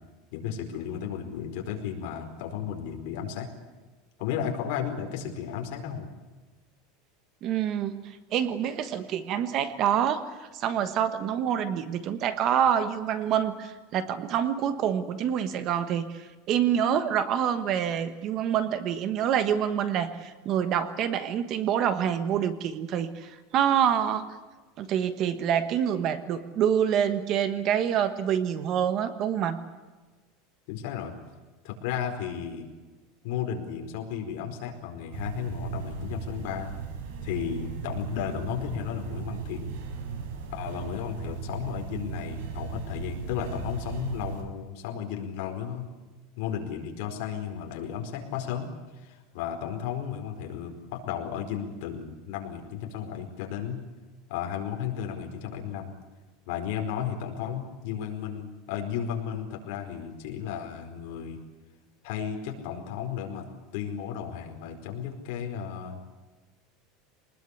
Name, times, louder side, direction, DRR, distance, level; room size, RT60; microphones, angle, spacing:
voice 1, 0.3-3.5 4.2-6.1 30.7-31.1 31.6-32.7 33.2-36.7 37.2-39.7 40.5-45.9 46.4-48.7 48.9-53.8 54.3-55.9 56.5-61.4 62.0-63.4 63.7-66.0, left 8 dB, 55° left, 3 dB, 4.7 m, -34 dB
voice 2, 7.4-8.0 8.3-24.3 24.8-29.6, right 9 dB, 35° right, 11 dB, 1.3 m, -26 dB
sound 1, 35.1-44.4, right 6 dB, 85° right, 5.5 m, -37 dB
24.5 x 20.0 x 8.5 m, 1.2 s
supercardioid pair, 175°, 0 cm